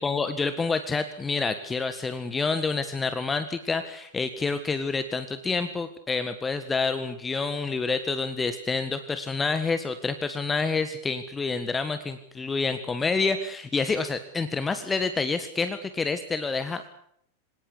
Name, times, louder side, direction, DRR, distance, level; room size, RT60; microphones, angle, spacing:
voice 1, 0.0-16.8, left 4 dB, 15° left, 11 dB, 1.6 m, -28 dB
26.0 x 18.0 x 8.2 m, 0.73 s
figure-of-eight pair, 90°, 0 cm